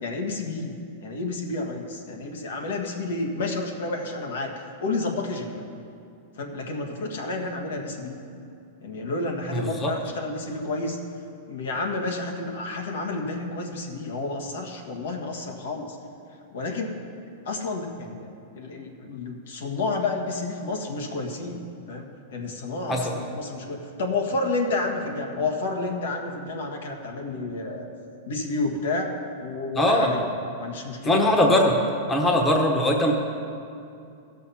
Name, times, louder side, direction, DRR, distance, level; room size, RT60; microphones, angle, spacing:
voice 1, 0.0-0.7 1.0-4.5 4.8-5.6 6.4-8.2 8.8-11.0 11.5-16.0 16.5-17.0 17.4-21.6 21.9-27.9 28.3-29.1 29.4-30.3 30.6-31.1, left 3 dB, 80° left, 2 dB, 1.6 m, -30 dB
voice 2, 9.5-9.9 22.9-23.0 29.8-30.1 31.0-31.8 32.1-33.1, left 1 dB, 15° left, 1 dB, 1.1 m, -20 dB
15.0 x 6.3 x 5.7 m, 2.6 s
supercardioid pair, 145°, 0 cm